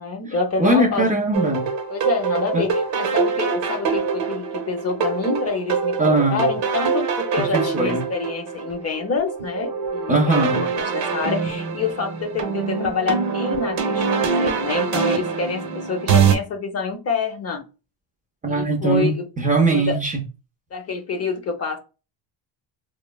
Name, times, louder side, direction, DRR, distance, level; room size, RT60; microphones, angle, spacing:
voice 1, 0.0-1.1 1.9-17.6 18.5-19.3 19.7-20.0 20.7-21.8, left 5 dB, 35° left, 0.5 m, -27 dB
voice 2, 0.6-1.7 2.5-2.6 6.0-6.5 7.5-8.0 10.1-10.7 18.4-20.2, right 2 dB, 20° right, 0.4 m, -20 dB
sound 1, 1.3-16.3, right 5 dB, 75° right, 0.9 m, -24 dB
3.0 x 2.1 x 2.2 m
cardioid pair, 115°, 44 cm